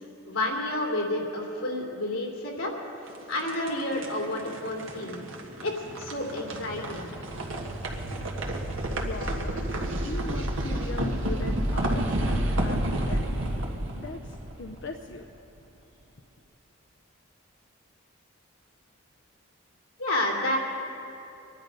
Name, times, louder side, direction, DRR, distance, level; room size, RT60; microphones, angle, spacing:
voice 1, 0.3-2.7 3.3-5.2 5.6-7.1 20.0-20.6, left 1 dB, 85° left, -1 dB, 2.9 m, -30 dB
sound 1, 3.1-15.2, right 1 dB, 70° right, 1.6 m, -30 dB
voice 2, 8.9-9.6 10.0-13.3 13.9-15.2, left 3 dB, 55° left, 4 dB, 0.6 m, -40 dB
24.5 x 11.0 x 5.3 m, 2.9 s
head